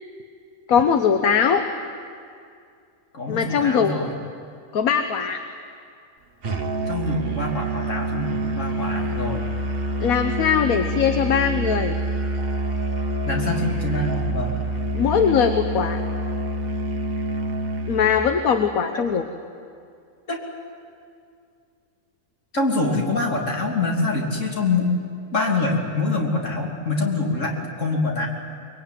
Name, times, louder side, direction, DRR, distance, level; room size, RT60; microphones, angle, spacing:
voice 1, 0.7-1.6 3.3-4.1 4.7-5.4 10.0-12.0 14.9-16.0 17.9-19.2, left 7 dB, 75° left, 7 dB, 1.5 m, -20 dB
voice 2, 3.1-4.1 6.9-9.4 13.3-14.6 18.9-19.0 20.3-20.4 22.5-24.9 25.3-28.3, left 2 dB, 55° left, 0 dB, 3.5 m, -25 dB
Musical instrument, 6.4-18.3, right 1 dB, 40° right, 1.4 m, -27 dB
24.0 x 22.5 x 9.2 m, 2.3 s
omnidirectional pair, 1.5 m